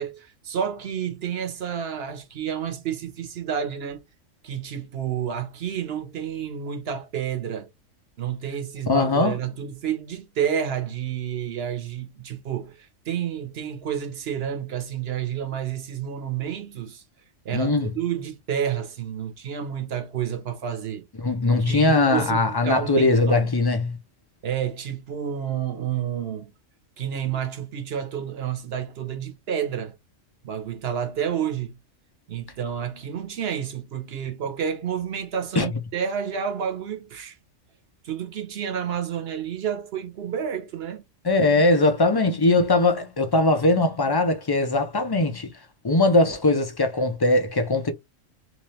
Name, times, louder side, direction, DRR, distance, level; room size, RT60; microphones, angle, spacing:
voice 1, 0.0-4.0 4.4-7.7 8.2-17.0 17.4-21.1 21.6-23.5 24.4-26.5 27.0-29.9 30.4-31.8 32.3-37.4 38.0-41.0, right 8 dB, 55° right, 1.0 m, -30 dB
voice 2, 8.9-9.4 17.5-17.9 21.2-23.9 35.6-35.7 41.2-45.5 45.8-47.9, left 2 dB, 35° left, 0.4 m, -20 dB
3.1 x 3.1 x 3.1 m
omnidirectional pair, 1.4 m